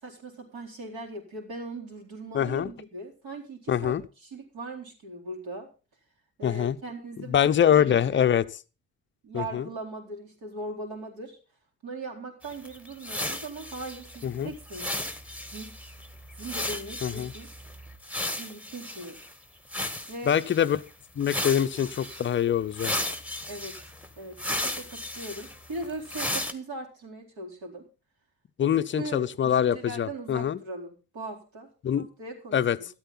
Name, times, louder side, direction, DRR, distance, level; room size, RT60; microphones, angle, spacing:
voice 1, 0.0-5.7 6.4-8.3 9.2-11.4 11.8-14.9 15.5-15.7 16.3-17.5 18.4-19.2 20.1-20.4 23.5-23.8 24.2-27.8 28.6-31.7 32.0-32.9, right 2 dB, 55° right, 4.3 m, -39 dB
voice 2, 2.3-2.7 3.7-4.0 6.4-6.8 7.3-8.5 9.3-9.7 14.2-14.5 17.0-17.3 20.3-20.8 21.2-22.9 28.6-30.6 31.8-32.1 32.5-32.8, left 9 dB, 25° left, 0.7 m, -24 dB
sound 1, 12.4-19.3 19.7-20.8 21.2-22.3 22.7-26.5, left 1 dB, 5° right, 1.6 m, -35 dB
13.5 x 12.5 x 4.1 m
figure-of-eight pair, 50°, 43 cm